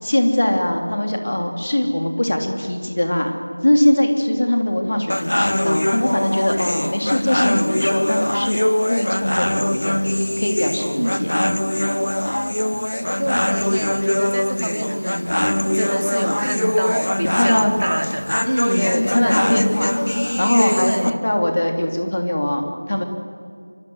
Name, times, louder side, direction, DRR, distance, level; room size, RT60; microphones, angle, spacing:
voice 1, 0.0-3.4 3.6-8.6 8.9-11.3 17.2-17.8 18.8-19.9 20.4-23.0, left 1 dB, 35° left, 4 dB, 3.1 m, -21 dB
sound 1, 5.1-21.1, left 1 dB, 50° left, 1.3 m, -22 dB
voice 2, 10.9-11.5 13.2-15.4 15.7-19.4 20.8-21.2, equal, 70° right, 5 dB, 3.4 m, -26 dB
26.5 x 25.0 x 8.0 m, 2.1 s
figure-of-eight pair, 180°, 0 cm